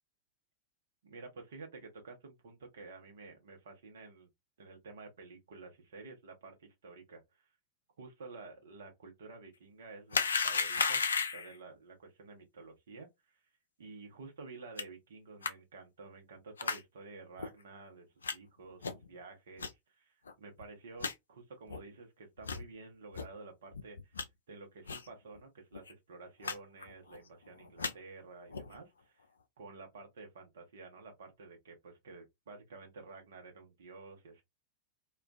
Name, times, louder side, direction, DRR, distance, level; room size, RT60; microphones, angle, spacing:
voice 1, 1.0-4.3 4.6-7.5 8.0-13.4 13.8-24.2 24.5-29.2 29.6-34.4, right 3 dB, 60° right, 0.8 m, -51 dB
sound 1, 10.1-11.6 14.8-14.9 15.4-15.5 16.6-16.8 17.4-17.5 18.2-18.3 18.8-19.1 19.6-19.7 20.3-20.4 20.6-20.7 21.0-21.1 21.7-21.8 22.4-22.6 23.1-23.3 23.7-24.2 24.9-25.1 25.4-25.5 25.7-25.9 26.4-26.6 26.8-27.2 27.6-27.9 28.5-28.8, left 5 dB, 70° left, 0.3 m, -34 dB
2.3 x 2.3 x 2.4 m
figure-of-eight pair, 90°, 0 cm